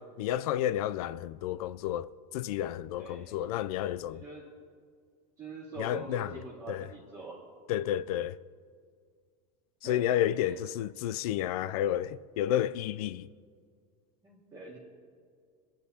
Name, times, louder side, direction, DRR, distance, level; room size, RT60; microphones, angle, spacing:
voice 1, 0.0-4.2 5.8-6.4 6.7-6.9 7.7-8.4 9.8-13.3, left 11 dB, 65° left, 0.4 m, -31 dB
voice 2, 3.0-3.3 4.1-4.5 5.4-7.4 9.8-10.6 14.2-14.8, right 3 dB, 15° right, 1.9 m, -45 dB
27.0 x 9.9 x 2.8 m
supercardioid pair, 165°, 20 cm